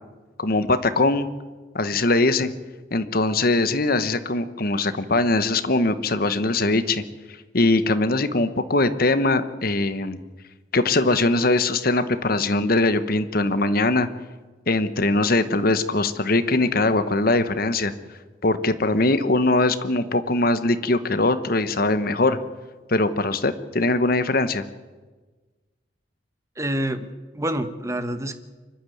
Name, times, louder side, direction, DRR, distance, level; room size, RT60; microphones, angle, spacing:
voice 1, 0.4-1.3 1.7-2.5 2.9-7.0 7.5-10.2 10.7-14.1 14.7-17.9 18.4-22.4 22.9-24.6, left 2 dB, 50° left, 12 dB, 1.1 m, -21 dB
voice 2, 26.6-27.1 27.3-28.4, right 1 dB, 15° right, 9 dB, 1.1 m, -27 dB
25.0 x 12.0 x 9.3 m, 1.3 s
head